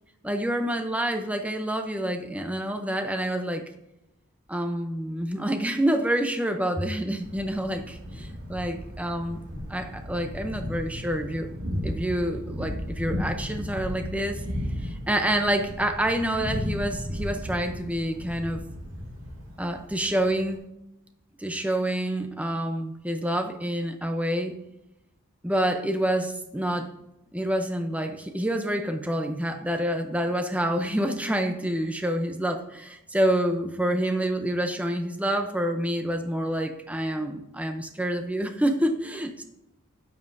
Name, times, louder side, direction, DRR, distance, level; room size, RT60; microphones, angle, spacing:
voice 1, 0.2-3.7 4.5-9.4 9.7-11.5 11.8-14.4 14.8-18.6 19.6-20.7 21.4-24.6 25.4-26.9 27.3-39.4, right 1 dB, 5° right, 6 dB, 0.7 m, -27 dB
Thunder, 7.2-20.6, equal, 70° right, 2.1 m, -35 dB
12.5 x 9.3 x 2.7 m, 0.87 s
head